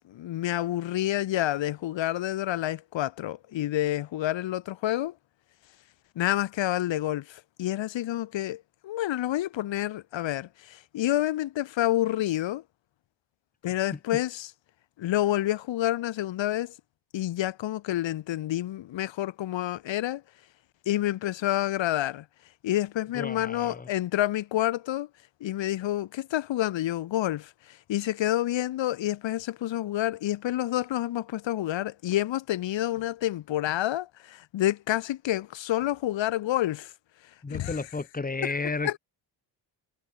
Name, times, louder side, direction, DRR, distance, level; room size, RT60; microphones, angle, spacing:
voice 1, 0.1-5.1 6.2-12.6 13.6-14.5 15.0-16.7 17.1-20.2 20.9-22.3 22.6-25.1 25.4-36.9 37.5-37.8 38.4-38.5 38.8-39.0, left 14 dB, 75° left, 1.8 m, -28 dB
voice 2, 23.1-23.9 37.4-38.9, left 3 dB, 20° left, 6.0 m, -32 dB
wide cardioid pair, 175°, 45 cm